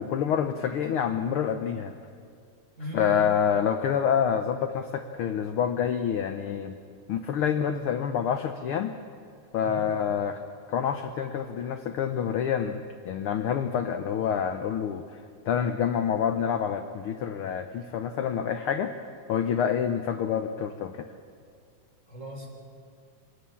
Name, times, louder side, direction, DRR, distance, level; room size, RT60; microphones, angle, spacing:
voice 1, 0.0-2.0 2.9-6.8 7.1-8.9 9.5-10.4 10.7-15.2 15.5-18.9 19.3-21.1, left 8 dB, 70° left, 7 dB, 1.3 m, -27 dB
voice 2, 2.8-3.2 9.6-9.9 22.1-22.5, left 1 dB, 25° right, -1 dB, 4.8 m, -38 dB
25.5 x 18.5 x 7.1 m, 2.2 s
omnidirectional pair, 3.4 m